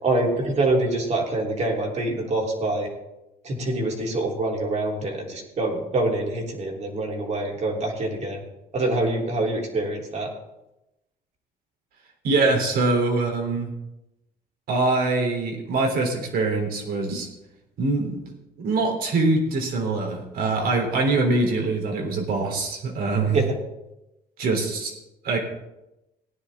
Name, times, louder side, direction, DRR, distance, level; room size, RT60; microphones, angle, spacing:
voice 1, 0.0-2.9 3.4-8.4 8.7-10.3 23.3-23.4, right 2 dB, 40° right, 0 dB, 3.3 m, -25 dB
voice 2, 12.2-13.7 14.7-17.3 17.8-23.4 24.4-24.9 25.2-25.4, right 3 dB, 65° right, 2 dB, 3.4 m, -24 dB
18.0 x 10.0 x 3.6 m, 0.93 s
cardioid pair, 110°, 17 cm